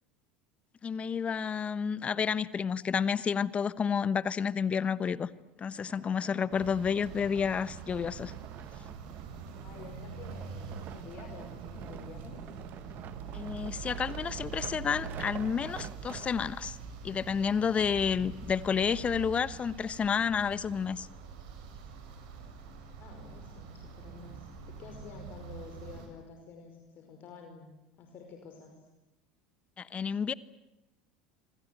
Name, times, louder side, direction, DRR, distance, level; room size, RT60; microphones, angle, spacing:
voice 1, 0.8-5.3 5.6-8.3 13.3-16.8 17.0-21.1 29.8-30.3, left 6 dB, 30° left, 17 dB, 1.1 m, -30 dB
sound 1, 5.7-16.7 17.4-17.5, right 10 dB, 50° right, 1.8 m, -47 dB
sound 2, 6.5-26.1, right 6 dB, 70° right, 7.0 m, -44 dB
voice 2, 9.6-12.4 23.0-28.7, left 5 dB, 50° left, 4 dB, 4.9 m, -50 dB
26.5 x 26.0 x 7.9 m, 0.97 s
hypercardioid pair, 80°, 4 cm